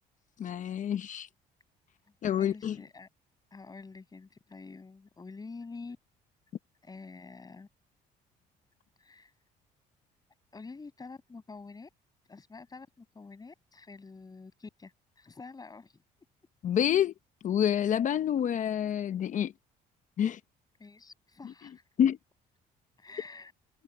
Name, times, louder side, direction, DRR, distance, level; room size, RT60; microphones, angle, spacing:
voice 1, 0.4-1.3 2.2-2.8 16.6-17.1 17.4-19.5 20.2-20.4 21.4-21.5 22.0-22.2, left 9 dB, 50° left, 0.8 m, -27 dB
voice 2, 2.4-3.1 3.5-6.0 6.8-7.7 9.0-9.3 10.5-11.9 12.3-16.0 20.8-21.8 23.0-23.5, left 4 dB, 25° left, 7.3 m, -47 dB
cardioid pair, 110°, 17 cm